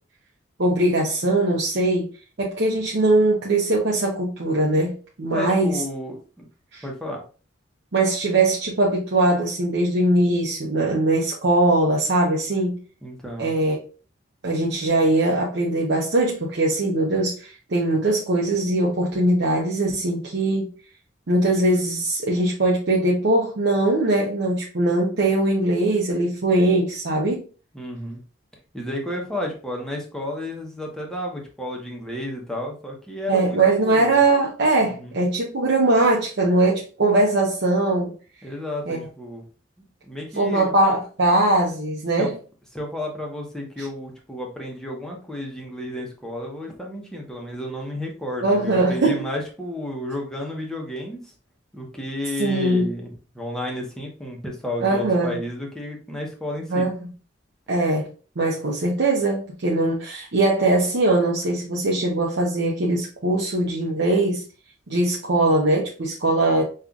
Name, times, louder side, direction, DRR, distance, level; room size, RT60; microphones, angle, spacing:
voice 1, 0.6-2.1 2.4-5.8 6.7-6.8 7.9-12.8 13.4-13.8 14.4-20.7 21.3-27.4 33.3-38.1 38.9-39.1 40.4-42.4 43.8-43.9 48.4-49.3 52.4-52.9 54.8-55.4 56.7-57.1 57.7-58.1 58.4-64.4 64.9-66.6, right 2 dB, 60° right, 0.7 m, -21 dB
voice 2, 5.3-6.5 6.8-7.2 13.0-13.5 27.7-28.2 28.7-34.2 34.8-35.2 38.4-39.4 40.0-40.7 42.2-42.3 42.7-51.3 51.7-56.8, left 1 dB, 5° left, 0.8 m, -32 dB
5.4 x 2.4 x 2.3 m
head